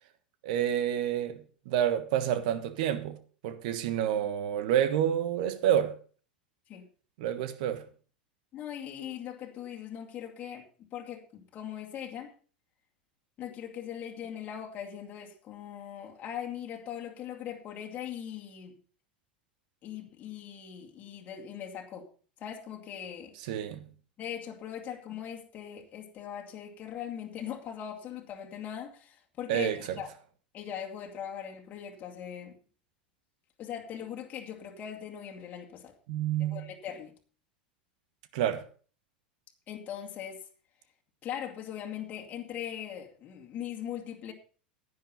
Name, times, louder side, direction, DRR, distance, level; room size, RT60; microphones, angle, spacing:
voice 1, 0.4-3.2 3.4-5.9 7.2-7.8 23.4-23.9 29.5-30.0 36.1-36.6 38.3-38.6, right 10 dB, 55° right, 1.3 m, -29 dB
voice 2, 8.5-12.3 13.4-18.8 19.8-22.1 22.4-23.4 24.2-30.1 30.5-32.6 33.6-35.9 36.4-37.1 39.7-40.4 41.2-44.3, left 9 dB, 35° left, 2.3 m, -40 dB
10.5 x 9.8 x 5.5 m
figure-of-eight pair, 85°, 5 cm